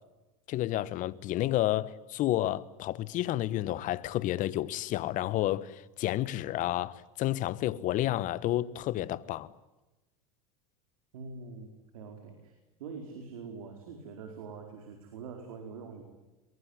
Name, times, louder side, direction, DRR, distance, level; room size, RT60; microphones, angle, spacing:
voice 1, 0.5-9.5, left 14 dB, 45° left, 1.3 m, -30 dB
voice 2, 11.1-12.5 12.8-16.0, right 5 dB, 75° right, 4.7 m, -44 dB
23.0 x 22.5 x 9.9 m
hypercardioid pair, 95°, 18 cm